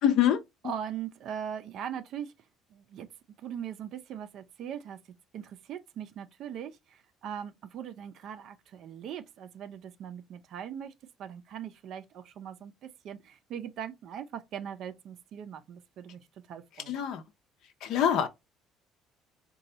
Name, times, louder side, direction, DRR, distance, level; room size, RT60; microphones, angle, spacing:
voice 1, 0.0-0.4 16.9-17.2 17.8-18.3, left 10 dB, 60° left, 0.5 m, -24 dB
voice 2, 0.6-2.3 2.7-3.1 3.4-5.0 5.3-10.9 11.2-16.2 16.5-17.0, right 9 dB, 50° right, 0.4 m, -40 dB
4.0 x 2.2 x 2.7 m
cardioid pair, 165°, 0 cm